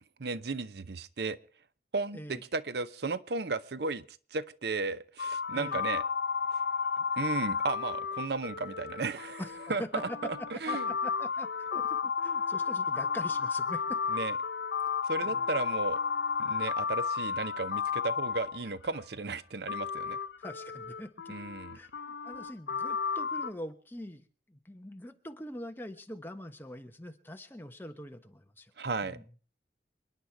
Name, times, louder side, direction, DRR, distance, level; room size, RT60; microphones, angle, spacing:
voice 1, 0.2-1.4 1.9-4.0 4.3-6.0 7.2-9.4 9.7-10.8 14.1-14.3 15.0-16.0 16.4-20.2 21.3-21.8 28.8-29.2, right 3 dB, 65° right, 15 dB, 0.7 m, -34 dB
voice 2, 2.1-2.4 5.5-5.8 9.4-9.9 10.7-14.0 15.2-15.4 20.4-21.4 21.7-28.7 29.0-29.2, left 1 dB, 10° left, 6 dB, 1.1 m, -44 dB
sound 1, 5.2-19.0 19.7-23.5, left 6 dB, 70° left, 0.7 m, -33 dB
28.0 x 10.0 x 4.6 m, 0.42 s
head